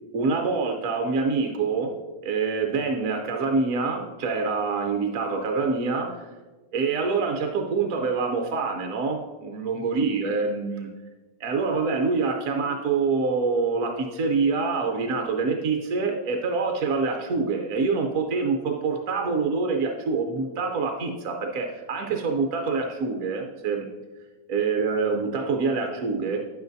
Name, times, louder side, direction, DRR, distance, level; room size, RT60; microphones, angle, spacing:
voice 1, 0.1-1.9 2.2-6.3 6.7-10.9 11.4-23.9 24.5-26.4, right 4 dB, 60° right, 3 dB, 0.9 m, -26 dB
9.7 x 8.1 x 2.6 m, 1.3 s
omnidirectional pair, 1.9 m